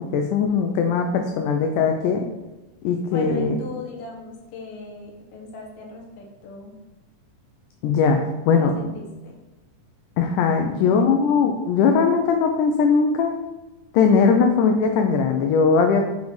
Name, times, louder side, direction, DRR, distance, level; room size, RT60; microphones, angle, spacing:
voice 1, 0.0-2.2 2.8-3.6 7.8-8.9 10.2-13.4 13.9-16.0, left 5 dB, 85° left, 5 dB, 1.8 m, -20 dB
voice 2, 3.1-6.7 8.4-9.4 10.7-11.2, left 3 dB, 65° left, -1 dB, 1.5 m, -38 dB
7.2 x 5.2 x 3.1 m, 1.1 s
omnidirectional pair, 4.1 m